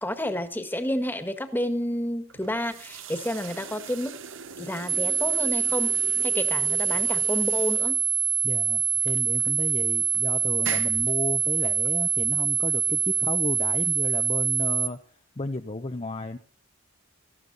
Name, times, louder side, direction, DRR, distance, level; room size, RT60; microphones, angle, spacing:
voice 1, 0.0-4.1 4.6-5.9 6.2-8.0, left 1 dB, 10° left, 9 dB, 1.6 m, -30 dB
sound 1, 2.3-14.7, right 6 dB, 65° right, 1.1 m, -42 dB
sound 2, 4.9-14.9, right 7 dB, 20° right, 0.6 m, -25 dB
voice 2, 8.4-16.4, left 2 dB, 30° left, 6 dB, 0.7 m, -33 dB
18.5 x 14.0 x 4.0 m, 0.40 s
head